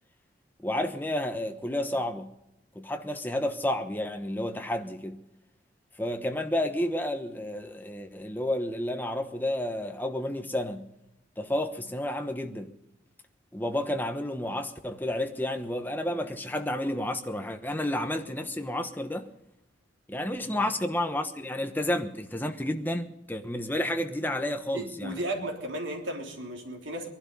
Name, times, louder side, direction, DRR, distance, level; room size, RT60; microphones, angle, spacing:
voice 1, 0.6-2.3 2.7-5.2 6.0-10.9 11.4-12.7 13.5-19.3 20.1-25.2, left 1 dB, 10° left, 1.1 m, -31 dB
voice 2, 24.7-27.1, right 1 dB, 75° right, 3.4 m, -35 dB
22.0 x 11.5 x 5.4 m
head